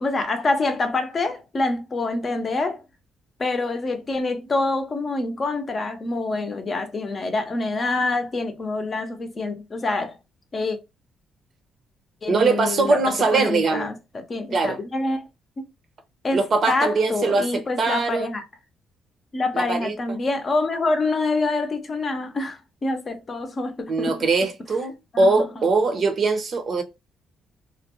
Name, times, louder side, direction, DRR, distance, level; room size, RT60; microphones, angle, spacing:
voice 1, 0.0-2.8 3.4-10.2 10.5-10.8 12.2-15.2 16.2-18.4 19.3-24.3 25.1-25.7 25.9-26.0, left 3 dB, 40° left, 0.6 m, -26 dB
voice 2, 12.3-13.9 14.5-14.8 16.3-18.3 19.5-19.9 23.9-26.8, right 3 dB, 50° right, 0.7 m, -22 dB
2.4 x 2.1 x 2.9 m
cardioid pair, 90°, 0 cm